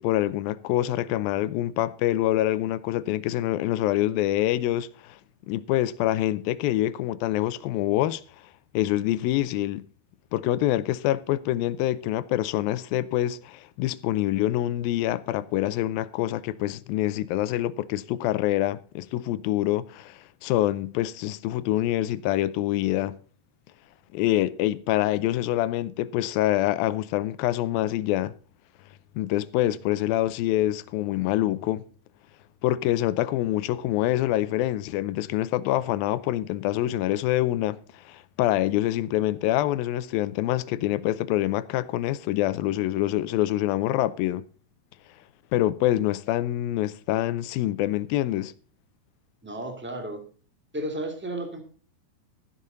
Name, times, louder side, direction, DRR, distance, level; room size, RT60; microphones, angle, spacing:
voice 1, 0.0-5.2 5.5-8.2 8.7-9.9 10.3-23.2 24.1-28.3 29.2-31.8 32.6-37.8 38.1-44.4 45.5-48.5, left 14 dB, 80° left, 2.3 m, -26 dB
voice 2, 49.4-50.2 50.7-51.6, right 1 dB, 5° right, 1.7 m, -33 dB
14.0 x 11.0 x 3.9 m
omnidirectional pair, 4.5 m